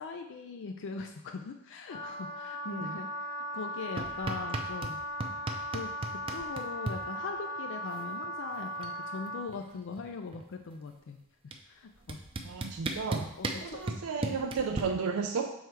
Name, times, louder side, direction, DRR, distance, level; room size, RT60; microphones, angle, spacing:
voice 1, 0.0-5.0 5.7-5.9 6.3-11.2 11.4-12.2 13.4-13.8, left 4 dB, 60° left, 5 dB, 0.4 m, -41 dB
Wind instrument woodwind instrument, 1.9-9.5, equal, 80° left, 2.1 m, -38 dB
sound 1, 4.0-4.9 5.2-7.0 8.2-8.3 8.6-9.0 9.3-10.6 11.5-11.6 12.1-14.8, right 2 dB, 25° right, 0.5 m, -35 dB
voice 2, 12.4-13.3 13.6-15.5, right 5 dB, 80° right, 3 dB, 0.4 m, -33 dB
6.3 x 3.3 x 4.5 m, 0.84 s
head